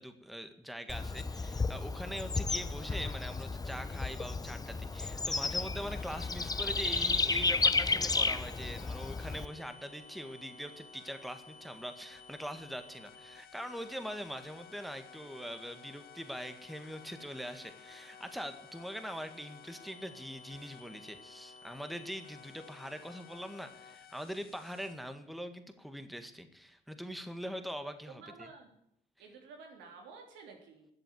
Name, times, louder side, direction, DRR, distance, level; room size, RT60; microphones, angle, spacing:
voice 1, 0.0-28.5, equal, ahead, 8 dB, 1.8 m, -42 dB
Bird / Insect, 0.9-9.5, left 3 dB, 20° left, 0.8 m, -33 dB
sound 1, 5.9-24.9, left 5 dB, 55° left, 2.0 m, -54 dB
voice 2, 28.1-28.7 29.2-30.9, right 4 dB, 90° right, 2 dB, 3.5 m, -52 dB
12.5 x 7.9 x 9.6 m, 0.75 s
cardioid pair, 75°, 19 cm